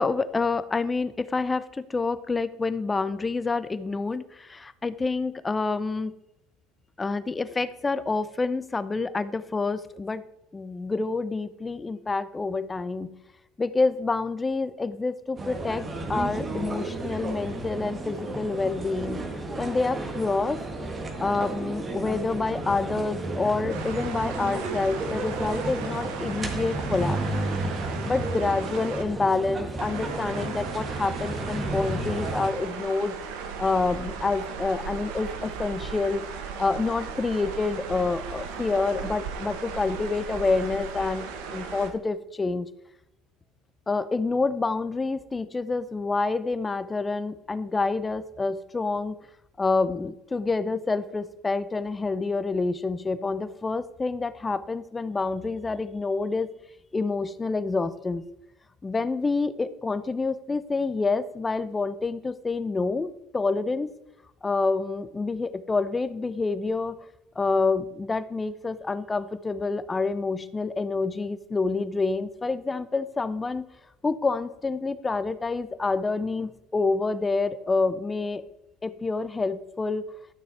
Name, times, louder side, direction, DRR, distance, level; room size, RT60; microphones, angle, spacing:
voice 1, 0.0-6.1 7.0-10.2 10.5-13.1 13.6-19.2 19.6-20.6 21.2-27.2 28.0-33.2 33.6-36.2 36.6-42.7 43.9-49.2 49.6-56.5 56.9-58.2 58.8-63.9 64.4-67.0 67.4-73.7 74.0-78.4 78.8-80.0, left 3 dB, 20° left, 14 dB, 0.7 m, -27 dB
sound 1, 15.4-32.5, right 2 dB, 30° right, 1.9 m, -32 dB
sound 2, 23.7-29.0 29.8-41.9, right 6 dB, 75° right, 1.2 m, -37 dB
12.5 x 6.2 x 4.4 m, 0.87 s
hypercardioid pair, 80°, 0 cm